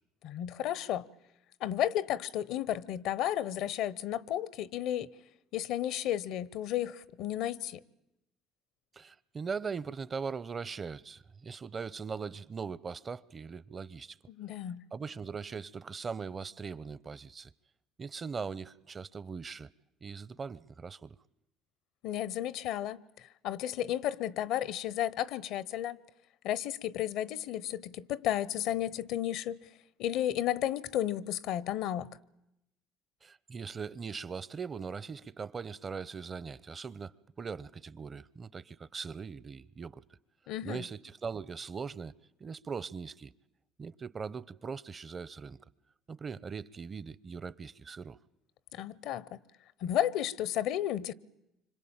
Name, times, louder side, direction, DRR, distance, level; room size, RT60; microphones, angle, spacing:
voice 1, 0.2-1.1 1.6-5.1 5.5-7.8 14.3-14.9 22.0-23.0 23.4-26.0 26.4-29.6 30.0-32.1 40.5-40.8 48.7-49.4 49.8-51.1, left 11 dB, 70° left, 0.9 m, -33 dB
voice 2, 8.9-14.2 14.9-17.5 18.0-19.7 20.0-21.2 33.2-40.0 40.6-42.1 42.4-43.3 43.8-45.6 46.1-48.2, right 5 dB, 35° right, 0.9 m, -40 dB
26.0 x 25.5 x 8.9 m
hypercardioid pair, 70°, 0 cm